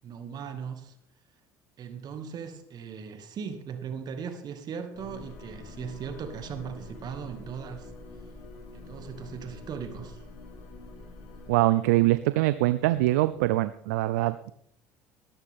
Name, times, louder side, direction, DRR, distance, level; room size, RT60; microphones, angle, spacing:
voice 1, 0.0-1.0 1.8-7.9 8.7-10.2, right 7 dB, 50° right, 7 dB, 2.2 m, -38 dB
sound 1, 4.9-11.6, left 3 dB, 75° left, 5.7 m, -45 dB
voice 2, 11.5-14.5, right 17 dB, 80° right, 14 dB, 0.6 m, -23 dB
17.5 x 13.5 x 3.7 m, 0.68 s
hypercardioid pair, 70°, 9 cm